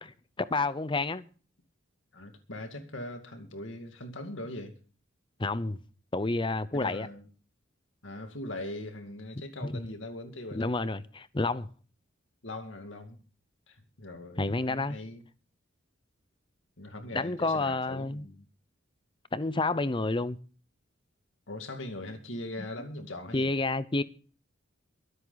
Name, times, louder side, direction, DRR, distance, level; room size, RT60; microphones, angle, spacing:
voice 1, 0.0-1.2 5.4-5.8 6.1-7.1 9.6-9.8 10.5-11.7 14.4-15.0 17.1-18.2 19.3-20.4 23.3-24.0, left 3 dB, 25° left, 0.7 m, -29 dB
voice 2, 2.1-4.7 6.7-7.3 8.0-10.7 12.4-13.2 13.7-15.2 16.8-18.5 21.5-23.5, left 1 dB, 70° left, 2.3 m, -41 dB
23.5 x 8.0 x 4.0 m
head